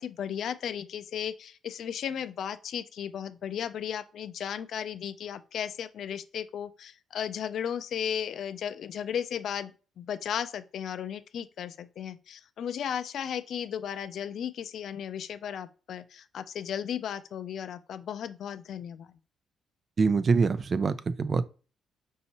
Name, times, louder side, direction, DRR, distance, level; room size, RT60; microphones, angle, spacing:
voice 1, 0.0-9.7 10.0-19.1, left 9 dB, 65° left, 0.4 m, -35 dB
voice 2, 20.0-21.4, right 4 dB, 40° right, 0.4 m, -24 dB
5.4 x 2.7 x 2.9 m
cardioid pair, 90°, 0 cm